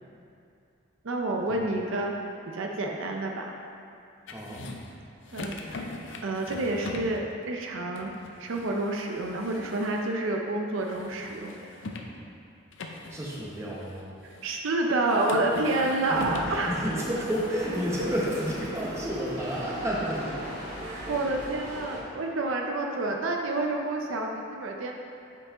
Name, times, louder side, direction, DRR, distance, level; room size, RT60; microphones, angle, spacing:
voice 1, 1.0-3.5 5.3-5.9 6.2-8.1 8.4-11.6 14.4-16.8 18.0-18.1 21.1-24.9, right 2 dB, 70° right, 1 dB, 0.5 m, -29 dB
sound 1, 4.3-5.0 5.2-7.2 7.9-10.3 10.8-12.2 12.7-14.6 15.1-16.7 17.1-17.6, left 2 dB, 65° left, 0.5 m, -42 dB
voice 2, 4.3-4.7 13.1-14.0 16.1-16.2 16.5-20.4, equal, 15° right, -5 dB, 0.9 m, -31 dB
sound 2, 16.0-22.0, equal, 35° right, 1.2 m, -38 dB
7.8 x 4.7 x 3.6 m, 2.5 s
head